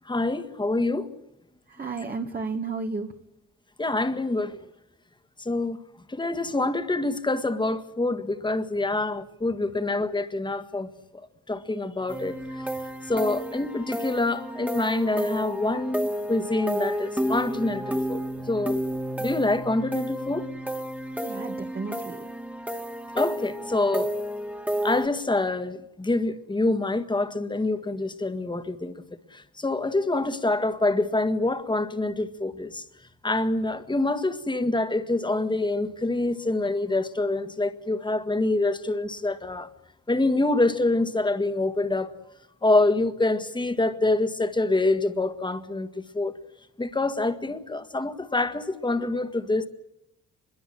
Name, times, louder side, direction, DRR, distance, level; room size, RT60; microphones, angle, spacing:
voice 1, 0.1-1.1 3.8-4.6 5.4-5.8 6.1-12.6 13.1-18.8 19.2-20.5 23.2-24.1 24.8-29.0 29.3-32.8 33.2-39.7 40.1-42.1 42.6-45.9 46.1-46.3 46.8-49.7, left 2 dB, 15° left, 1.7 m, -26 dB
voice 2, 1.7-3.2 21.2-22.3, right 4 dB, 30° right, 1.6 m, -33 dB
sound 1, 12.1-25.1, equal, 5° right, 2.0 m, -31 dB
25.5 x 22.0 x 7.7 m
cardioid pair, 90°, 30 cm